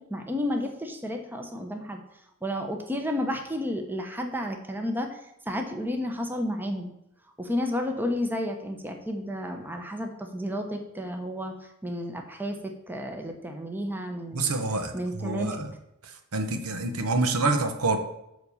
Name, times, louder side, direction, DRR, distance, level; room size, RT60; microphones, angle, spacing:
voice 1, 0.0-2.0 2.4-5.2 5.5-6.9 7.4-11.6 11.8-14.6 14.9-15.6, left 1 dB, 10° right, 4 dB, 0.9 m, -31 dB
voice 2, 14.3-15.7 16.3-18.0, right 3 dB, 75° right, 6 dB, 1.2 m, -27 dB
9.5 x 4.0 x 7.0 m, 0.83 s
head